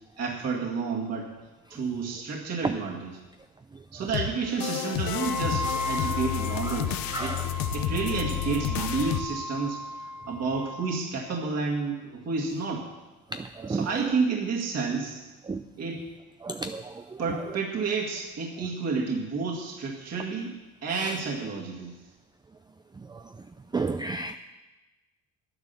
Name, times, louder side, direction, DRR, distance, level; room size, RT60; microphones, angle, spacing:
voice 1, 0.0-1.3 1.7-3.2 3.9-7.3 7.7-12.9 13.7-15.2 15.8-16.0 17.2-20.5 20.8-21.9, right 4 dB, 50° right, -2 dB, 2.1 m, -30 dB
sound 1, 4.1-9.2, left 11 dB, 80° left, 0.9 m, -30 dB
Wind instrument woodwind instrument, 5.1-11.0, left 1 dB, 50° left, 1.1 m, -36 dB
voice 2, 13.3-13.9 15.5-15.6 16.4-16.8 23.7-24.4, right 3 dB, 15° right, 8 dB, 0.4 m, -31 dB
9.9 x 9.6 x 6.9 m, 1.1 s
cardioid pair, 90°, 34 cm